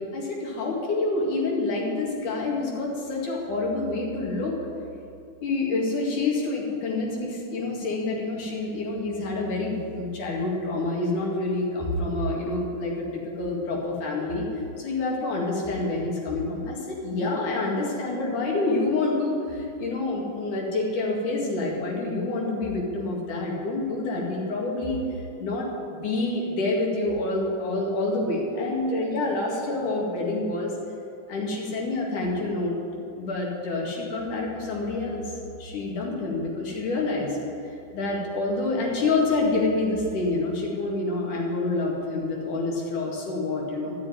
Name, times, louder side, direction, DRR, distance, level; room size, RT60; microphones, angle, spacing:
voice 1, 0.1-4.5 5.4-13.1 13.4-14.5 14.8-25.0 25.4-30.7 31.3-32.7 33.1-35.2 35.6-37.4 37.6-44.0, left 2 dB, 75° left, -2 dB, 3.7 m, -27 dB
13.0 x 7.0 x 9.3 m, 2.6 s
omnidirectional pair, 3.6 m